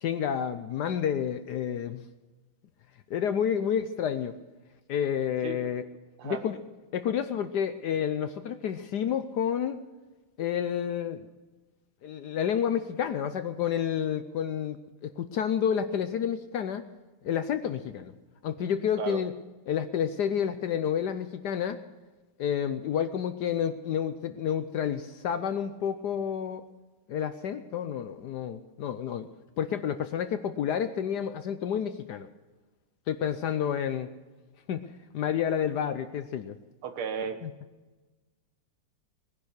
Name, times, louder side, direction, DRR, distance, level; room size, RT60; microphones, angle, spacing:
voice 1, 0.0-2.0 3.1-4.3 4.9-5.8 6.2-6.6 6.9-9.8 10.4-11.3 12.0-16.8 17.2-18.1 18.4-19.3 19.7-21.8 22.4-26.6 27.1-29.3 29.6-32.3 33.1-34.1 34.7-34.8 35.1-36.6 37.4-37.5, left 8 dB, 65° left, 10 dB, 1.0 m, -30 dB
voice 2, 36.8-37.4, right 7 dB, 85° right, 8 dB, 2.1 m, -34 dB
19.5 x 10.5 x 6.6 m, 1.2 s
omnidirectional pair, 2.3 m